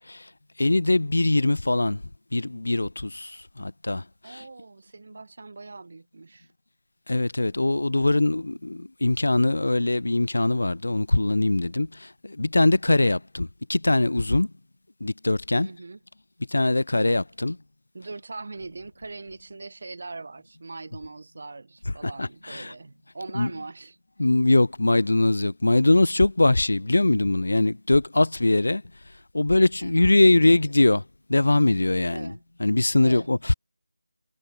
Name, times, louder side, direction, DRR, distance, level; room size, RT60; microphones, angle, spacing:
voice 1, 0.6-2.0 2.3-4.4 7.1-14.5 15.0-15.7 16.5-17.6 22.0-22.7 23.3-23.5 24.2-28.8 29.3-31.0 31.3-32.3 32.6-33.5, left 2 dB, 65° left, 2.1 m, -22 dB
voice 2, 4.2-6.5 15.6-16.0 17.9-24.0 29.8-30.6 32.1-32.4 33.0-33.4, right 3 dB, 50° right, 3.3 m, -41 dB
figure-of-eight pair, 160°, 0 cm